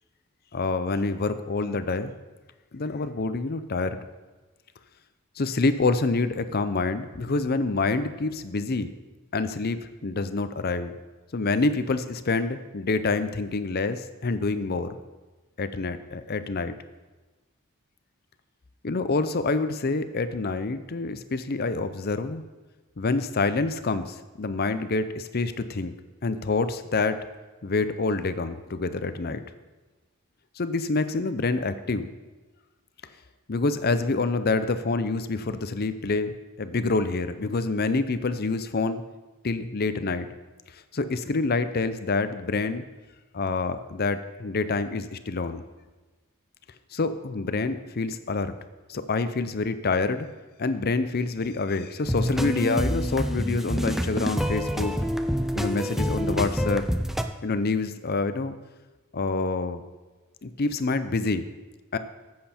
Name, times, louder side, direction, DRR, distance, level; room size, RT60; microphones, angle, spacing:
voice 1, 0.5-2.1 2.7-4.0 5.4-8.9 9.3-10.9 11.3-14.9 15.6-16.7 18.8-22.4 23.0-25.9 26.2-27.2 27.6-29.4 30.6-32.1 33.5-39.0 39.4-40.3 40.9-42.8 43.3-45.6 46.9-48.5 48.9-50.3 50.6-54.9 55.5-56.9 57.4-58.6 59.1-59.8 60.4-61.5 61.9-62.0, left 3 dB, 45° left, 11 dB, 0.6 m, -27 dB
sound 1, 52.1-57.2, equal, ahead, 0.5 m, -27 dB
14.0 x 7.7 x 4.4 m, 1.2 s
head